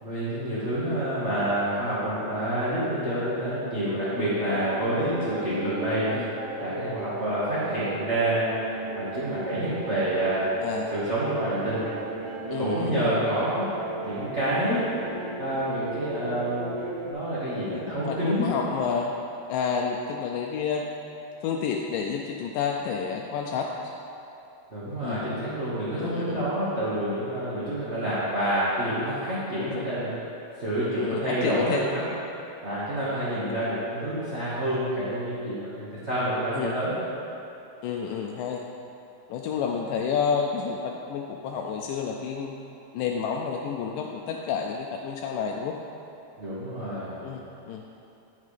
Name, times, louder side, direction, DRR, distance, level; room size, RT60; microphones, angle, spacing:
voice 1, 0.0-6.1 6.6-8.5 8.9-10.4 10.9-11.8 12.6-13.7 14.0-14.9 15.4-16.7 17.0-18.5 24.7-30.1 30.6-32.0 32.6-36.9 46.4-47.1, right 1 dB, 35° right, -11 dB, 1.0 m, -28 dB
sound 1, 4.3-17.1, right 3 dB, 70° right, 2.0 m, -36 dB
voice 2, 10.6-10.9 12.5-13.2 17.7-19.1 19.5-20.9 21.4-23.7 25.0-25.3 26.0-26.4 29.6-29.9 31.0-31.8 33.4-33.6 36.5-36.8 37.8-38.6 39.3-42.5 42.9-45.8 47.2-47.8, left 6 dB, 80° left, 1 dB, 2.1 m, -30 dB
14.0 x 6.4 x 3.4 m, 2.8 s
omnidirectional pair, 3.9 m